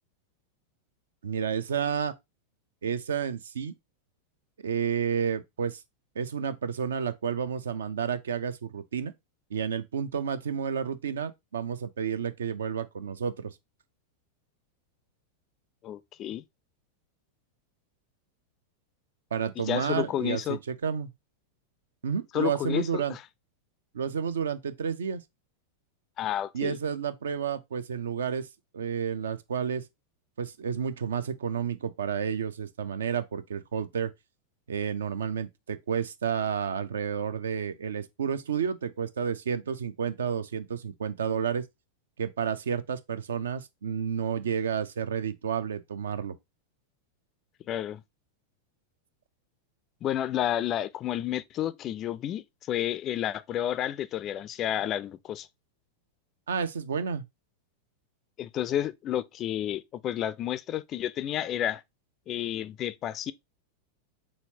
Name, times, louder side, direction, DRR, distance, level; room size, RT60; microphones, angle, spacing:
voice 1, 1.2-2.1 2.8-3.7 4.6-5.8 6.2-9.1 9.5-13.5 19.3-21.1 22.0-23.2 23.9-25.2 26.5-28.5 28.7-29.9 30.4-34.1 34.7-41.6 42.2-46.4 56.5-57.2, right 7 dB, 65° right, 0.4 m, -31 dB
voice 2, 15.8-16.4 19.6-20.6 22.3-23.2 26.2-26.8 47.7-48.0 50.0-55.5 58.4-61.8 62.3-63.3, left 11 dB, 30° left, 0.3 m, -31 dB
4.3 x 3.7 x 2.7 m
figure-of-eight pair, 90°, 0 cm